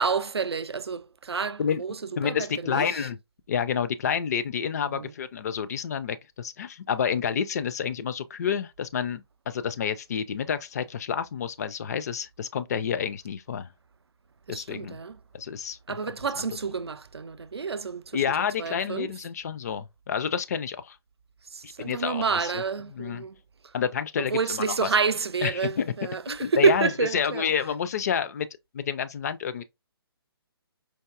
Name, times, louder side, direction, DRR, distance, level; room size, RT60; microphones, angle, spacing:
voice 1, 0.0-2.0 2.2-3.0 4.9-5.1 14.5-15.2 15.9-18.2 18.6-19.1 21.5-23.3 24.3-27.5, right 5 dB, 85° right, 0.4 m, -28 dB
voice 2, 2.2-3.2 3.5-13.7 14.5-15.0 15.3-16.0 16.4-16.5 18.1-21.0 21.6-22.6 22.9-23.2 23.7-24.9 25.4-25.9 26.3-28.5 28.7-29.6, left 7 dB, 40° left, 0.4 m, -29 dB
4.6 x 2.5 x 2.4 m
figure-of-eight pair, 140°, 13 cm